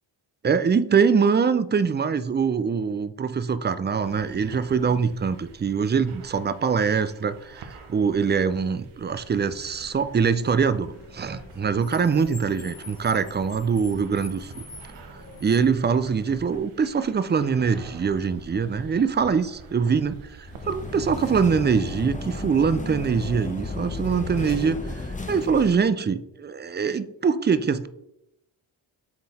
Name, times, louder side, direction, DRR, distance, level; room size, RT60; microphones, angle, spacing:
voice 1, 0.4-14.6 15.4-25.0 25.3-27.9, right 6 dB, 25° right, 14 dB, 0.4 m, -23 dB
sound 1, 4.0-21.0, right 5 dB, 75° right, 0.9 m, -47 dB
Car, 9.0-16.6, left 2 dB, 60° left, 1.9 m, -45 dB
sound 2, 20.5-25.8, left 3 dB, 15° left, 0.8 m, -33 dB
6.5 x 3.8 x 4.2 m, 0.82 s
cardioid pair, 45°, 49 cm